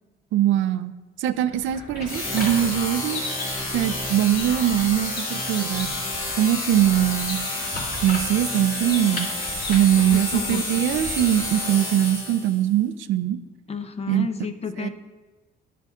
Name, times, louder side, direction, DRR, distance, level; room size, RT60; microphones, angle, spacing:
voice 1, 0.3-0.9 1.2-3.2 3.7-6.0 6.4-7.4 8.0-9.3 9.7-13.4 14.1-14.3 14.8-14.9, right 11 dB, 80° right, 12 dB, 0.4 m, -22 dB
sound 1, 1.4-11.6, left 1 dB, 50° left, 2.4 m, -37 dB
sound 2, 2.1-12.6, left 2 dB, 90° left, 2.2 m, -30 dB
voice 2, 10.1-10.6 13.7-14.9, left 5 dB, 30° left, 9 dB, 0.5 m, -31 dB
11.0 x 6.9 x 2.4 m, 1.2 s
cardioid pair, 90°, 20 cm